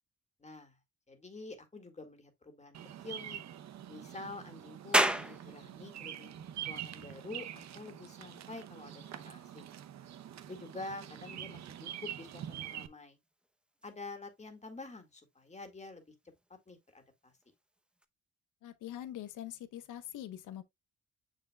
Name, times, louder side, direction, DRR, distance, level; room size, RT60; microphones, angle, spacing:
voice 1, 0.4-0.8 1.1-3.4 3.9-9.7 10.5-13.2 13.8-16.1 16.7-17.3, left 2 dB, 20° left, 2.0 m, -48 dB
Bird vocalization bird call bird song, 2.7-12.9, right 10 dB, 60° right, 0.9 m, -45 dB
sound 1, 4.9-18.0, right 1 dB, 5° right, 0.8 m, -40 dB
voice 2, 18.6-20.6, left 12 dB, 85° left, 0.9 m, -43 dB
6.7 x 6.4 x 2.3 m
cardioid pair, 90°, 30 cm